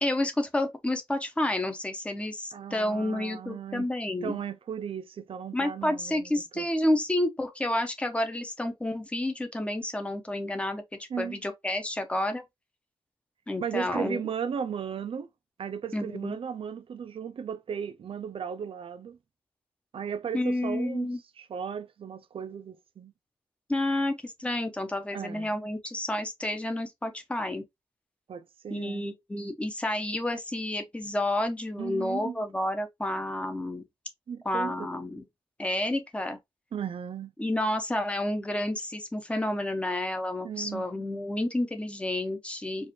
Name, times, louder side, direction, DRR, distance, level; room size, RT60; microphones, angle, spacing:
voice 1, 0.0-4.4 5.5-10.8 11.2-12.4 13.5-14.2 15.9-16.4 20.3-21.2 23.7-27.6 28.7-33.8 34.4-35.2 35.6-36.4 37.4-42.9, left 1 dB, 10° left, 0.7 m, -30 dB
voice 2, 2.5-3.9 4.2-6.7 11.1-11.4 13.6-15.3 15.6-19.2 19.9-21.1 21.4-23.1 25.1-25.5 28.3-29.1 31.8-32.4 34.3-34.9 36.7-37.3 40.4-40.9, right 7 dB, 75° right, 0.5 m, -36 dB
4.7 x 2.6 x 2.8 m
wide cardioid pair, 175°, 10 cm